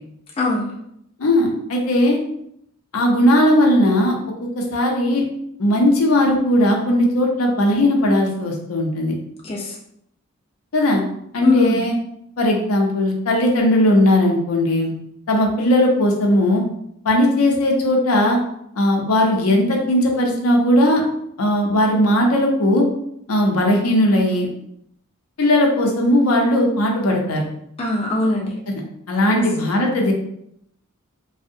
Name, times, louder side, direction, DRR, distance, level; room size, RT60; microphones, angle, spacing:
voice 1, 0.4-0.7 9.4-9.7 11.4-11.8 27.8-28.5 29.3-29.4, left 3 dB, 25° left, -3 dB, 0.3 m, -21 dB
voice 2, 1.2-2.2 2.9-4.2 4.6-5.2 5.6-9.1 10.7-11.0 11.3-11.9 12.4-14.9 15.3-16.6 17.0-18.4 18.8-21.0 21.4-22.8 23.3-24.5 25.4-27.5 29.1-30.1, left 1 dB, 85° left, 1 dB, 0.6 m, -17 dB
2.6 x 2.0 x 2.6 m, 0.73 s
head